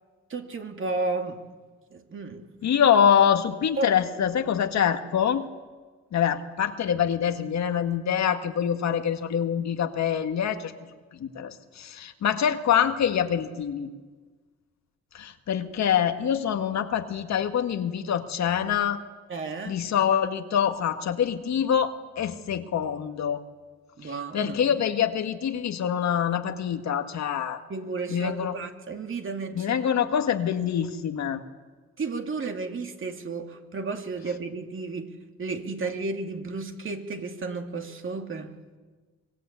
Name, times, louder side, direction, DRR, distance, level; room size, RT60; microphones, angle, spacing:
voice 1, 0.3-1.4 1.9-2.4 3.8-3.9 19.3-19.8 24.0-24.7 27.7-30.1 32.0-38.5, right 3 dB, 40° right, 4 dB, 2.8 m, -33 dB
voice 2, 2.6-5.4 6.1-10.7 11.1-13.9 15.1-19.0 19.6-23.4 24.0-27.6 28.1-28.6 29.5-31.4, left 8 dB, 65° left, 7 dB, 1.8 m, -25 dB
25.0 x 21.0 x 8.3 m, 1.4 s
cardioid pair, 90°, 30 cm